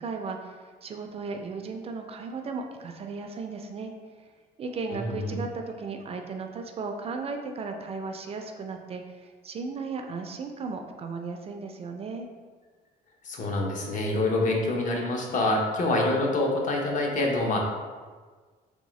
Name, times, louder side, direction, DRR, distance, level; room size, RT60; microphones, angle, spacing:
voice 1, 0.0-3.9 4.6-12.3, right 4 dB, 35° right, 4 dB, 0.4 m, -36 dB
voice 2, 4.9-5.4 13.2-17.6, left 2 dB, 50° left, 0 dB, 0.8 m, -26 dB
3.6 x 3.3 x 3.1 m, 1.5 s
cardioid pair, 110°, 17 cm